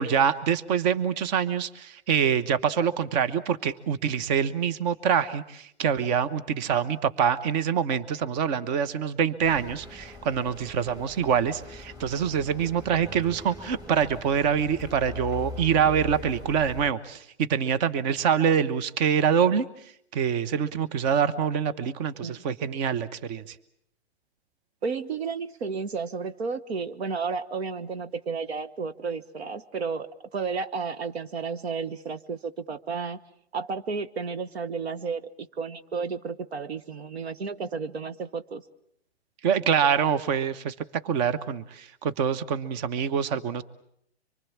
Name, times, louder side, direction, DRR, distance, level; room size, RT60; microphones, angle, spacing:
voice 1, 0.0-19.6 20.1-23.5 39.4-40.7 41.0-43.6, right 7 dB, 40° right, 15 dB, 1.2 m, -25 dB
sound 1, 9.4-16.9, left 1 dB, 10° right, 2.4 m, -42 dB
voice 2, 24.8-33.2 33.5-38.6, right 5 dB, 70° right, 11 dB, 1.3 m, -32 dB
25.5 x 24.0 x 7.3 m, 0.71 s
hypercardioid pair, 125°, 33 cm